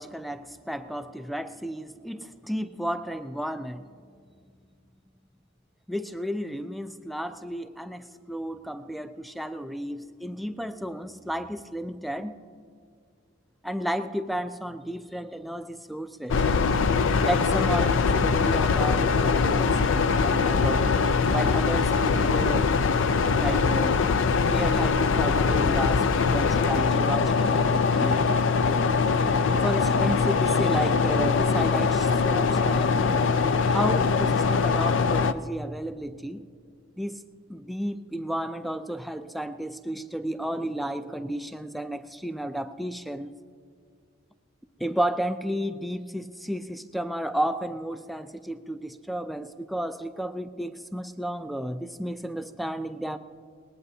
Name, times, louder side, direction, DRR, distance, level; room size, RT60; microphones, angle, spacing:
voice 1, 0.0-3.9 5.9-12.4 13.6-16.4 17.2-20.9 21.3-22.7 23.3-24.0 24.4-28.2 29.5-33.0 33.7-36.4 37.0-37.2 37.5-43.3 44.8-53.2, equal, ahead, 10 dB, 0.4 m, -32 dB
sound 1, 16.3-35.3, left 5 dB, 65° left, 0.4 m, -22 dB
20.0 x 19.0 x 2.7 m, 2.1 s
head